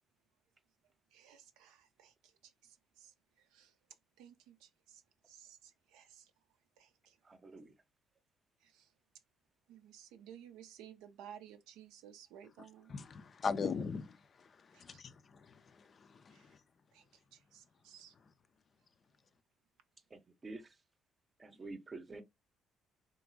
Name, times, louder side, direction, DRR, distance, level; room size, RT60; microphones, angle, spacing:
voice 1, 1.1-3.8 4.2-6.3 6.8-7.2 8.6-8.9 9.7-12.9 14.7-15.0 16.3-16.5 16.9-18.1, right 9 dB, 75° right, 0.4 m, -57 dB
voice 2, 7.2-7.7 20.1-20.7 21.4-22.2, right 3 dB, 35° right, 0.6 m, -48 dB
voice 3, 12.9-14.2 14.8-15.1 15.5-15.9 16.3-16.4, left 5 dB, 45° left, 0.3 m, -38 dB
2.9 x 2.5 x 2.5 m
hypercardioid pair, 50°, 0 cm